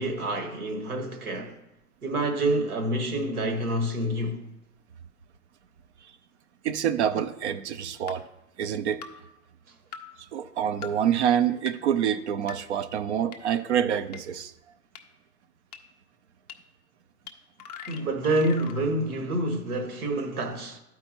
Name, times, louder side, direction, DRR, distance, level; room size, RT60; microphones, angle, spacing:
voice 1, 0.0-1.5 2.0-4.4 17.9-20.8, right 1 dB, 70° right, 1.3 m, -27 dB
voice 2, 6.6-8.3 8.6-9.0 10.3-14.5, right 9 dB, 50° right, 0.4 m, -26 dB
sound 1, 7.0-7.1 8.1-8.2 9.0-9.1 9.9-10.0 10.8-10.9 11.7-11.8 12.5-12.6 13.3-13.4 14.1-14.2 15.0-15.1 15.7-15.8 16.5-16.6 17.3-17.4 17.6-18.8, left 8 dB, 30° left, 0.4 m, -41 dB
12.0 x 4.6 x 2.9 m
hypercardioid pair, 120°, 46 cm